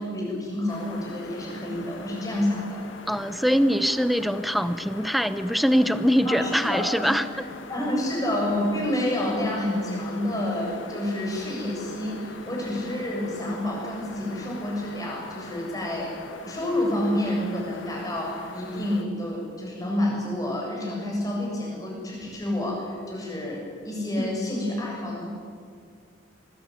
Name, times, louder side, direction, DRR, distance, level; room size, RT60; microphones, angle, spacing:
voice 1, 0.0-2.8 6.3-7.1 7.7-16.2 16.5-25.3, left 1 dB, 20° left, -1 dB, 7.8 m, -29 dB
sound 1, 0.7-19.0, left 2 dB, 80° left, 2.1 m, -42 dB
voice 2, 3.1-7.3 24.2-24.4, equal, ahead, 12 dB, 0.8 m, -23 dB
26.0 x 21.0 x 9.5 m, 2.2 s
head